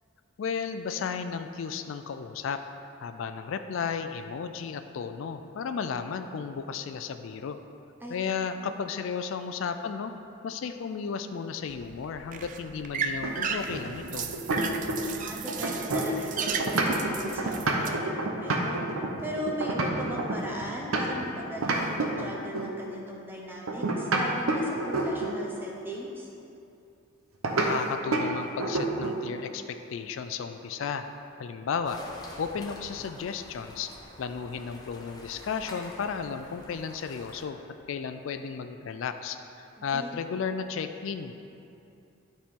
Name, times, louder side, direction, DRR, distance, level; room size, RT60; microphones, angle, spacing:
voice 1, 0.4-2.6 3.0-7.6 8.1-10.1 10.4-14.3 27.5-31.0 31.4-32.0 32.4-33.9 34.2-37.6 37.9-41.3, left 6 dB, 65° left, 8 dB, 0.3 m, -34 dB
sound 1, 11.7-17.9, right 6 dB, 40° right, 0.3 m, -35 dB
sound 2, 13.2-15.2 15.5-21.3 21.6-22.8 23.7-25.5 27.4-27.7 28.1-28.3 28.6-29.3, right 2 dB, 85° right, 0.8 m, -29 dB
voice 2, 14.9-26.3 39.8-40.1, equal, 10° right, -2 dB, 0.8 m, -38 dB
sound 3, 31.8-37.4, left 1 dB, 20° left, 0.7 m, -46 dB
12.0 x 4.3 x 3.7 m, 2.7 s
head